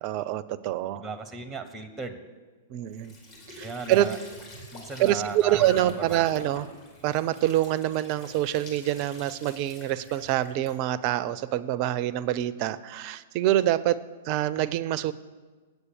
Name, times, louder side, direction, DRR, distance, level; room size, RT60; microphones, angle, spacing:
voice 1, 0.0-1.0 2.7-3.1 3.6-4.1 5.0-6.7 7.0-14.0 14.2-15.1, right 13 dB, 40° right, 17 dB, 0.4 m, -26 dB
voice 2, 1.0-2.2 3.6-4.2 4.7-6.2, right 4 dB, 10° right, 11 dB, 0.7 m, -36 dB
Squeak / Sink (filling or washing) / Trickle dribble, 2.9-10.8, equal, 35° left, 2.8 m, -46 dB
8.1 x 8.0 x 7.1 m, 1.4 s
figure-of-eight pair, 105°, 0 cm